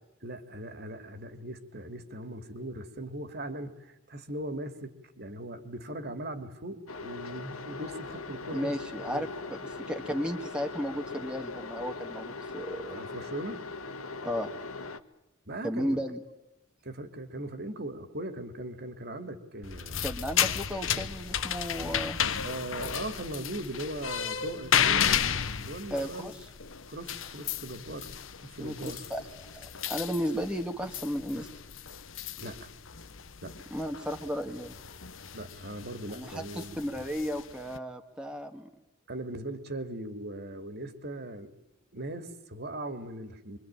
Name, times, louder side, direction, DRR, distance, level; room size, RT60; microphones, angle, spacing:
voice 1, 0.2-8.8 9.1-9.3 12.9-13.7 15.5-16.0 16.8-20.0 20.4-20.5 22.4-26.4 26.9-28.1 28.4-29.1 32.4-32.7 33.4-33.5 35.3-37.0 39.1-41.5 41.9-43.6, right 1 dB, 50° right, 9 dB, 2.7 m, -39 dB
sound 1, 6.9-15.0, left 3 dB, 90° left, 1.8 m, -40 dB
voice 2, 8.5-9.3 9.6-13.0 14.2-14.5 15.6-16.2 20.0-22.2 25.9-26.4 28.6-29.2 29.5-31.5 33.7-34.8 36.1-38.7, equal, 5° right, 3 dB, 1.8 m, -34 dB
sound 2, 19.6-37.8, left 8 dB, 70° left, 1.2 m, -33 dB
27.0 x 24.0 x 9.0 m, 0.88 s
head